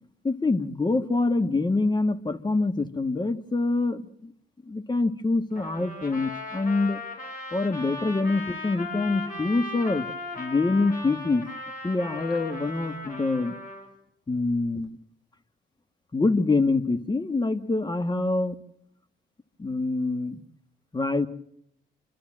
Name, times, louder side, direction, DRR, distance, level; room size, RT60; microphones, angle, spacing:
voice 1, 0.2-4.3 4.7-7.0 7.5-10.1 10.4-11.4 11.8-13.5 14.3-15.0 16.1-18.6 19.6-20.4 20.9-21.3, left 3 dB, 20° left, 11 dB, 1.5 m, -25 dB
Trumpet, 5.6-13.9, left 3 dB, 45° left, 6.5 m, -37 dB
28.0 x 13.0 x 7.5 m, 0.76 s
cardioid pair, 90°, 20 cm